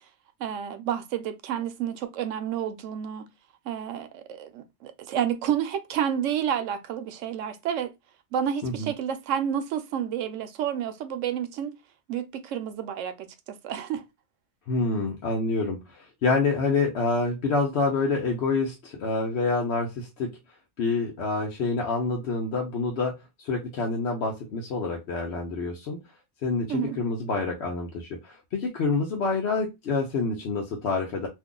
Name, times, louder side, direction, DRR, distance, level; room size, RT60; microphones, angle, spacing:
voice 1, 0.4-3.2 3.7-7.9 8.3-11.7 12.1-13.3 13.6-14.0 26.7-27.0, right 9 dB, 90° right, 0.9 m, -30 dB
voice 2, 14.7-20.3 20.8-26.0 26.4-31.3, left 3 dB, 65° left, 0.9 m, -27 dB
2.6 x 2.3 x 3.7 m
omnidirectional pair, 1.3 m